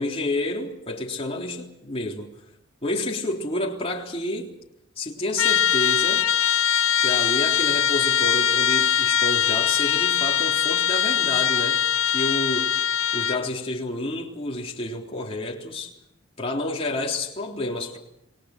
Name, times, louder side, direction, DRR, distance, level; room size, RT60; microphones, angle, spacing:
voice 1, 0.0-2.3 2.8-4.5 5.0-6.3 7.0-11.8 12.1-12.7 13.1-15.9 16.4-18.0, left 2 dB, 30° left, 3.6 m, -29 dB
Trumpet, 5.4-13.5, left 9 dB, 85° left, 1.0 m, -22 dB
28.0 x 22.0 x 6.7 m
head